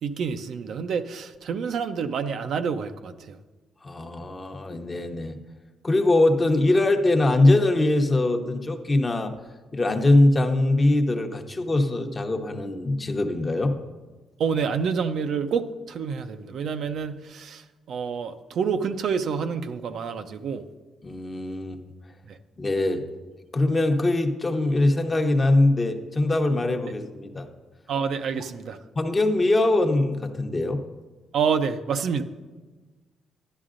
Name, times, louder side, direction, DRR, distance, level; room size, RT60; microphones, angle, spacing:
voice 1, 0.0-3.4 14.4-20.6 22.3-22.4 27.9-28.8 31.3-32.2, right 6 dB, 65° right, 8 dB, 0.5 m, -28 dB
voice 2, 3.8-5.4 5.8-9.3 9.7-13.7 21.0-21.8 22.6-23.0 23.5-27.5 29.0-30.8, left 2 dB, 25° left, 5 dB, 0.9 m, -22 dB
11.0 x 10.5 x 2.5 m, 1.3 s
cardioid pair, 90°, 0 cm